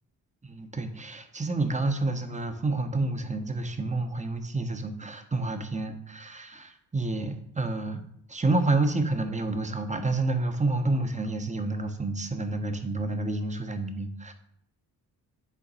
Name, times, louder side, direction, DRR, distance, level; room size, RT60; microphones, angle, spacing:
voice 1, 0.4-8.0 8.3-14.3, right 2 dB, 15° right, 7 dB, 0.9 m, -29 dB
5.9 x 3.9 x 4.1 m, 0.68 s
hypercardioid pair, 45°, 44 cm